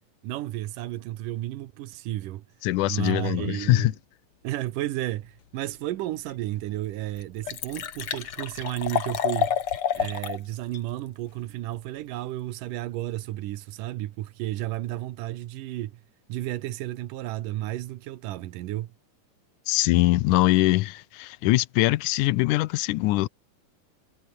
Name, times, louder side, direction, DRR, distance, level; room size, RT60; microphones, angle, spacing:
voice 1, 0.2-2.4 2.9-3.9 4.4-9.6 9.9-16.0 16.3-18.9, right 15 dB, 85° right, 2.6 m, -32 dB
voice 2, 2.6-3.9 19.7-23.3, left 18 dB, 80° left, 2.1 m, -22 dB
Liquid, 6.3-6.4 6.9-7.0 7.2-10.4 10.7-10.8, left 8 dB, 50° left, 2.2 m, -29 dB
omnidirectional pair, 3.7 m